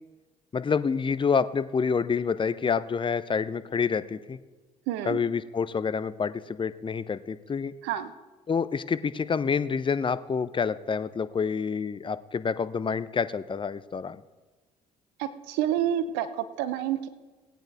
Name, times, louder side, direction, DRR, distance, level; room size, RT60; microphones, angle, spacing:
voice 1, 0.5-4.4 5.1-7.7 8.5-14.2, left 6 dB, 25° left, 14 dB, 0.6 m, -28 dB
voice 2, 4.9-5.2 7.8-8.1 15.2-17.1, right 11 dB, 70° right, 12 dB, 0.8 m, -29 dB
18.5 x 8.9 x 3.4 m, 1.2 s
hypercardioid pair, 55°, 19 cm